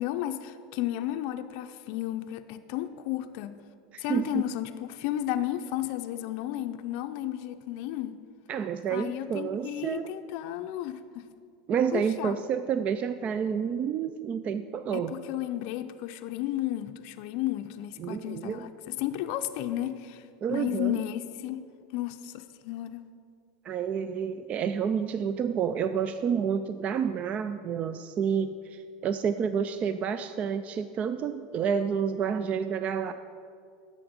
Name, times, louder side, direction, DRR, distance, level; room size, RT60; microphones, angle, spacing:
voice 1, 0.0-3.6 4.0-8.2 8.9-11.3 11.9-12.4 14.9-21.6 21.9-23.0, left 13 dB, 60° left, 8 dB, 0.5 m, -33 dB
voice 2, 3.9-4.5 8.5-10.1 11.7-15.2 18.0-18.7 20.4-21.0 23.6-33.1, right 7 dB, 35° right, 11 dB, 0.4 m, -29 dB
10.5 x 7.1 x 5.1 m, 2.3 s
supercardioid pair, 110°, 4 cm